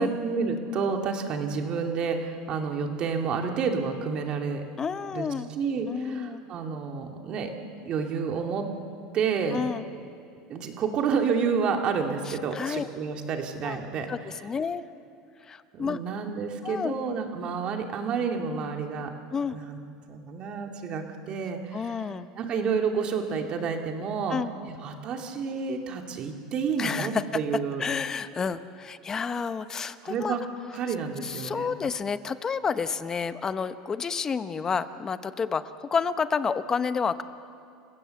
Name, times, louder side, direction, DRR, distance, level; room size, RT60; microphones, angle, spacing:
voice 1, 0.0-4.6 5.1-5.3 5.5-7.5 7.8-8.6 9.1-9.6 10.5-14.1 15.7-19.1 19.5-19.8 20.1-22.0 22.4-24.4 24.7-27.8 30.0-30.4 30.7-31.8, right 5 dB, 45° right, 3 dB, 2.5 m, -29 dB
voice 2, 4.8-5.5 5.9-6.4 9.5-9.8 12.3-12.9 13.6-13.8 14.1-14.8 15.5-16.0 16.6-17.0 19.3-19.6 21.7-22.3 24.3-24.5 26.8-27.2 27.8-30.4 31.2-37.2, left 6 dB, 25° left, 12 dB, 0.9 m, -30 dB
29.0 x 16.0 x 7.1 m, 2.4 s
supercardioid pair, 115°, 2 cm